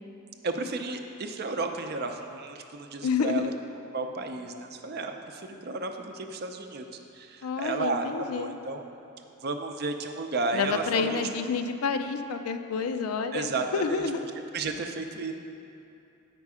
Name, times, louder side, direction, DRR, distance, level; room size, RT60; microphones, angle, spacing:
voice 1, 0.4-3.5 3.9-6.9 7.1-8.8 9.4-11.2 13.3-14.0 14.5-15.3, right 3 dB, 45° right, 5 dB, 0.5 m, -33 dB
voice 2, 3.0-3.5 7.4-8.6 10.5-14.3, left 5 dB, 85° left, 8 dB, 0.4 m, -29 dB
8.1 x 5.3 x 4.8 m, 2.7 s
head